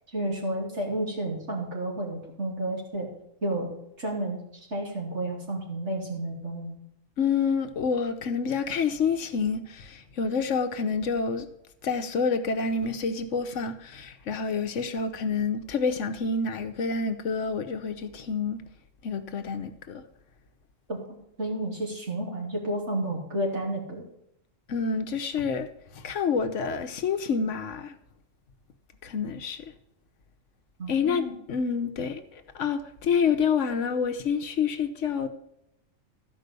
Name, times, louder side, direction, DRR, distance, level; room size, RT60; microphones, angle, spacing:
voice 1, 0.1-3.1 3.4-3.7 4.0-4.4 4.7-6.8 20.9-21.0 21.4-24.1 30.8-31.4, right 1 dB, 60° right, 3.3 m, -31 dB
voice 2, 7.2-11.5 11.8-18.6 19.0-20.0 24.7-25.7 25.9-27.9 29.0-29.6 30.9-32.2 32.5-35.3, left 5 dB, 70° left, 1.2 m, -28 dB
13.0 x 5.4 x 6.7 m
omnidirectional pair, 1.3 m